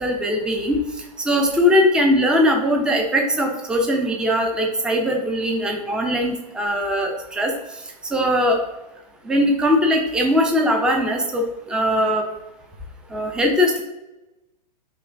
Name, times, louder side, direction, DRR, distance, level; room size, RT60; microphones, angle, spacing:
voice 1, 0.0-0.8 1.2-7.5 8.1-8.6 9.2-12.2 13.1-13.8, equal, 5° right, 2 dB, 0.4 m, -20 dB
5.4 x 2.1 x 2.5 m, 0.97 s
figure-of-eight pair, 110°, 21 cm